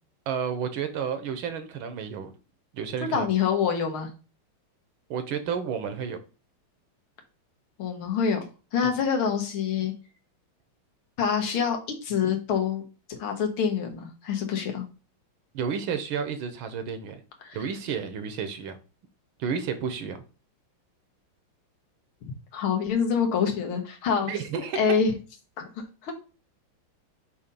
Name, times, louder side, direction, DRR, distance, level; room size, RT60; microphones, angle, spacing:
voice 1, 0.3-2.3 2.7-3.3 5.1-6.2 15.5-17.2 17.5-18.8 19.4-20.2 24.2-24.8, right 7 dB, 75° right, 9 dB, 1.6 m, -31 dB
voice 2, 3.0-4.1 7.8-8.4 8.7-9.9 11.2-12.8 13.2-14.9 17.4-17.6 22.5-24.3 24.8-25.1 25.6-25.7 26.0-26.1, left 6 dB, 80° left, 3 dB, 2.1 m, -26 dB
6.9 x 2.8 x 5.2 m, 0.33 s
omnidirectional pair, 2.3 m